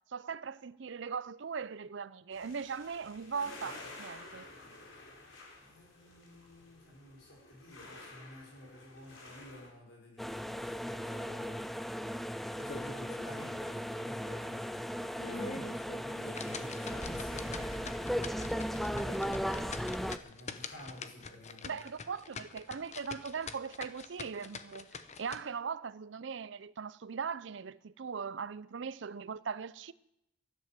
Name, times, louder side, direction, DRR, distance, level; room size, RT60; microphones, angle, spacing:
voice 1, 0.1-4.5 21.6-29.9, right 6 dB, 65° right, 0.5 m, -40 dB
sound 1, 2.3-9.7, left 2 dB, 90° left, 4.1 m, -51 dB
voice 2, 4.6-5.0 5.6-11.9 12.5-14.6 15.2-21.8, left 1 dB, 75° left, 5.8 m, -51 dB
sound 2, 10.2-20.2, equal, ahead, 0.4 m, -37 dB
sound 3, 12.6-13.3 13.7-13.8 14.3-14.4 15.0-25.4, left 4 dB, 35° left, 0.9 m, -45 dB
12.5 x 11.0 x 7.5 m
head